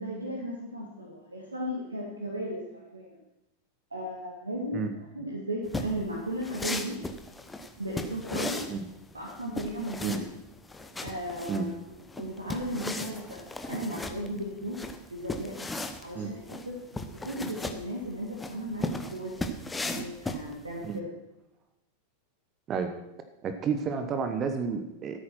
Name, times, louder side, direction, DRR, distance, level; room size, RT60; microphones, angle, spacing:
voice 1, 0.0-3.2 3.9-7.0 7.8-8.6 9.1-10.2 11.0-14.8 15.1-15.6 16.0-21.1, equal, 80° right, -2 dB, 2.0 m, -36 dB
sound 1, 5.7-20.9, left 2 dB, 10° left, 1.0 m, -37 dB
voice 2, 23.4-25.2, right 5 dB, 30° right, 7 dB, 1.2 m, -30 dB
13.0 x 8.8 x 6.1 m, 0.91 s
figure-of-eight pair, 90°, 0 cm